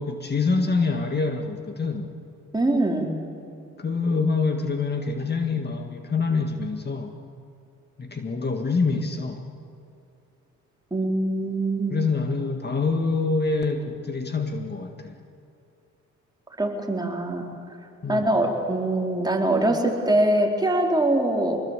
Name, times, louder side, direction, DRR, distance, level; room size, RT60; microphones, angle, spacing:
voice 1, 0.0-2.1 3.8-7.2 8.0-9.4 11.9-15.2 18.0-18.3, left 4 dB, 35° left, 5 dB, 2.0 m, -26 dB
voice 2, 2.5-3.1 10.9-12.0 16.6-17.5 18.1-21.6, right 1 dB, 15° right, 1 dB, 4.3 m, -23 dB
25.0 x 21.0 x 8.3 m, 2.5 s
cardioid pair, 90°, 30 cm